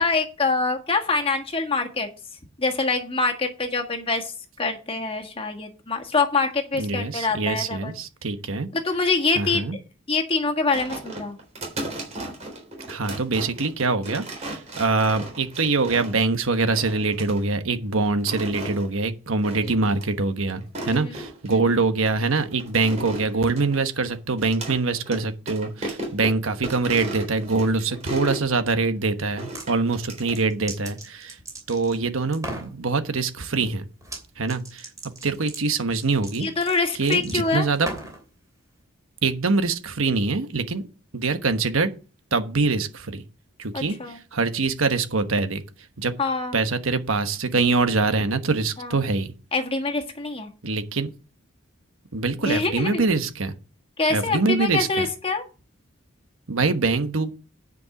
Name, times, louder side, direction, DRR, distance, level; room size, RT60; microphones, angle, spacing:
voice 1, 0.0-2.1 2.6-4.3 4.6-7.9 8.7-9.7 10.1-11.4 19.7-19.9 20.9-21.1 21.5-21.7 36.4-37.7 43.7-44.2 46.2-46.6 48.8-49.0 49.5-50.5 52.4-53.1 54.0-55.4, left 3 dB, 25° left, 1.5 m, -25 dB
voice 2, 6.7-8.7 9.4-9.8 12.9-31.4 31.7-33.9 34.4-34.9 35.2-36.5 36.9-37.9 39.2-40.8 41.1-41.9 42.3-43.2 43.6-45.6 46.0-46.1 46.5-49.3 50.6-51.1 52.1-53.5 54.1-55.1 56.5-57.3, right 3 dB, 85° right, 1.2 m, -24 dB
sound 1, 10.7-16.3 16.7-17.4 18.1-18.9 19.4-19.7 20.0-20.1 20.6-21.5 22.1-24.8 25.1-25.2 25.5-28.5 29.4-30.4, right 1 dB, 35° right, 3.8 m, -35 dB
sound 2, 29.3-29.7 30.2-32.0 32.3-32.7 34.0-34.2 34.5-38.2, right 2 dB, 15° right, 2.8 m, -37 dB
9.7 x 5.2 x 7.1 m
head